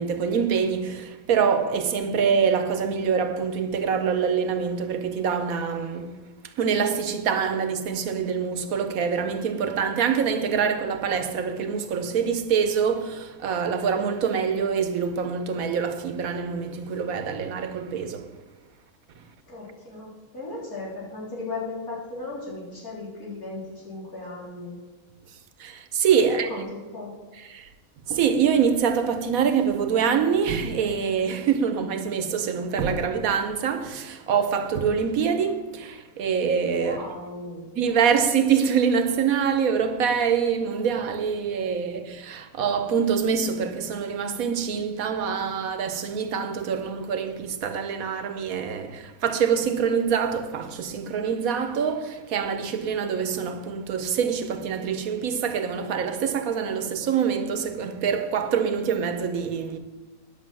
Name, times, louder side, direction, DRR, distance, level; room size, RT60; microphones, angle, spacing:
voice 1, 0.0-6.2 6.6-18.3 25.6-26.5 27.5-27.7 28.1-37.0 37.7-59.8, right 6 dB, 75° right, 1.3 m, -25 dB
voice 2, 19.5-24.7 26.2-27.1 36.7-37.6, left 2 dB, 80° left, 4.2 m, -36 dB
10.0 x 6.5 x 7.5 m
omnidirectional pair, 1.5 m